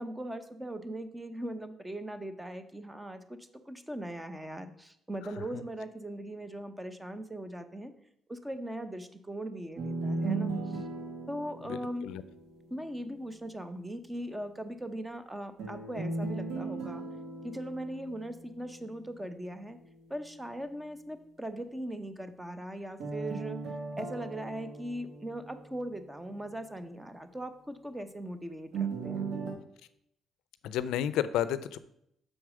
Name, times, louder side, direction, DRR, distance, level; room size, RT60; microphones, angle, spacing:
voice 1, 0.0-3.4 3.7-7.9 8.3-10.8 11.3-12.1 12.7-17.0 17.4-19.8 20.1-23.6 24.0-29.3, right 1 dB, 10° right, 10 dB, 0.8 m, -39 dB
sound 1, 9.8-12.8 15.6-18.8 23.0-26.1 28.7-29.5, right 3 dB, 80° right, 1.7 m, -37 dB
voice 2, 11.6-12.2 30.6-31.8, left 11 dB, 90° left, 15 dB, 0.4 m, -32 dB
6.4 x 4.7 x 6.1 m, 0.74 s
cardioid pair, 90°, 0 cm